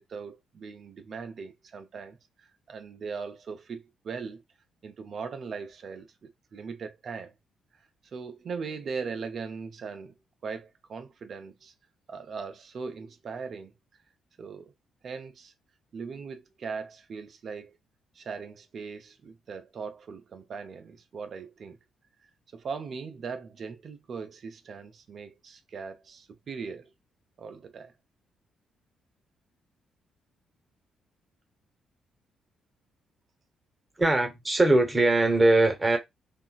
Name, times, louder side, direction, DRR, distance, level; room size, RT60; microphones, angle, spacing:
voice 1, 0.0-4.4 4.8-7.3 8.0-10.1 10.4-11.7 12.1-13.7 14.4-14.7 15.0-15.5 15.9-17.8 18.1-21.8 22.5-26.9 27.4-27.9, right 5 dB, 50° right, 0.5 m, -39 dB
voice 2, 34.0-36.0, right 2 dB, 20° right, 0.8 m, -21 dB
2.9 x 2.4 x 2.3 m
figure-of-eight pair, 40°, 0 cm